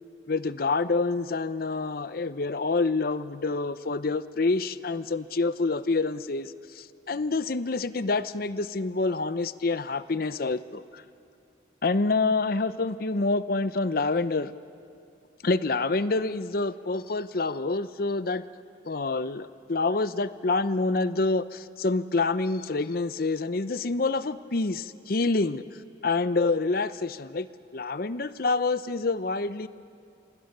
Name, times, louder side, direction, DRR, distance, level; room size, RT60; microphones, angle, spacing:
voice 1, 0.3-11.0 11.8-14.5 15.4-18.4 18.9-25.6 26.0-27.5 27.7-29.7, left 3 dB, 50° left, 14 dB, 0.7 m, -27 dB
28.0 x 24.0 x 6.7 m, 2.4 s
head